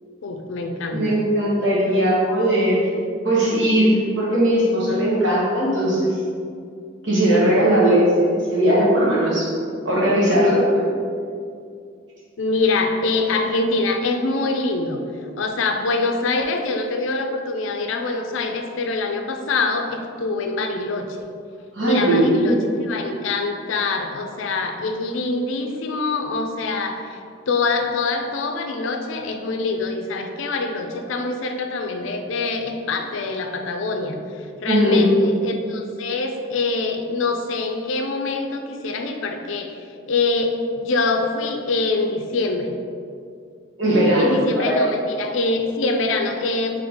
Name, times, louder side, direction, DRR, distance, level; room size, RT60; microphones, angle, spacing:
voice 1, 0.2-1.2 1.9-2.0 12.4-15.0 15.4-21.3 21.8-27.2 27.5-39.8 40.1-42.8 44.2-46.8, left 3 dB, 75° left, 4 dB, 0.4 m, -24 dB
voice 2, 0.9-2.9 3.2-6.2 7.0-9.5 9.8-10.8 21.7-22.6 34.6-35.0 43.8-44.9, right 1 dB, 65° right, -7 dB, 1.3 m, -18 dB
3.8 x 3.2 x 3.5 m, 2.3 s
head